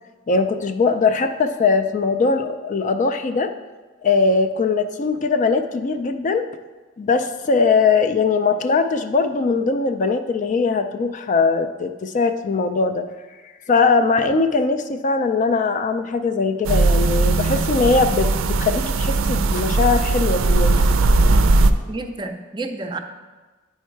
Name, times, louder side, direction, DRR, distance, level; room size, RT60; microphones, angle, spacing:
voice 1, 0.3-3.5 4.0-6.4 7.0-13.1 13.7-20.7, left 4 dB, 40° left, 8 dB, 0.4 m, -20 dB
sound 1, 16.6-21.7, right 3 dB, 75° right, 0.4 m, -18 dB
voice 2, 21.9-23.0, right 2 dB, 20° right, 6 dB, 0.5 m, -30 dB
9.3 x 4.6 x 4.5 m, 1.3 s
head